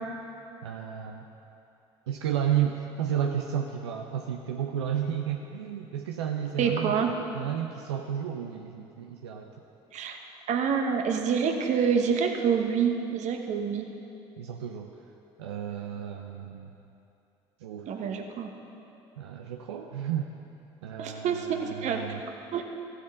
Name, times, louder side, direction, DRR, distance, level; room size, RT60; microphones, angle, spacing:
voice 1, 0.6-1.2 2.1-9.5 14.4-14.9 15.4-16.7 17.6-18.0 19.2-20.3 20.8-22.2, right 9 dB, 90° right, 2 dB, 0.5 m, -32 dB
voice 2, 6.6-7.1 9.9-10.2 10.5-13.9 17.9-18.5 21.0-22.0 22.5-22.6, right 6 dB, 60° right, 4 dB, 1.1 m, -27 dB
15.0 x 7.9 x 3.7 m, 2.8 s
hypercardioid pair, 65°, 14 cm